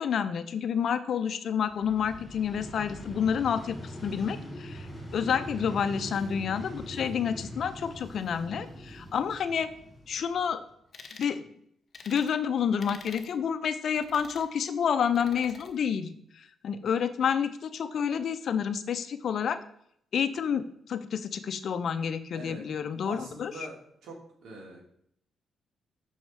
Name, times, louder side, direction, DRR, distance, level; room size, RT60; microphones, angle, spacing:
voice 1, 0.0-4.9 5.1-9.7 10.1-10.6 11.2-11.4 12.1-19.6 20.1-23.5, left 7 dB, 60° left, 11 dB, 0.6 m, -29 dB
Vehicle, 1.6-10.6, equal, 20° left, 3.1 m, -42 dB
sound 1, 10.9-11.3 11.9-12.3 12.8-13.3 14.0-14.5 15.1-15.7, left 5 dB, 45° left, 1.0 m, -47 dB
voice 2, 23.0-23.8 24.0-24.8, right 2 dB, 80° right, -1 dB, 2.4 m, -43 dB
6.3 x 4.6 x 5.7 m, 0.69 s
cardioid pair, 115°, 0 cm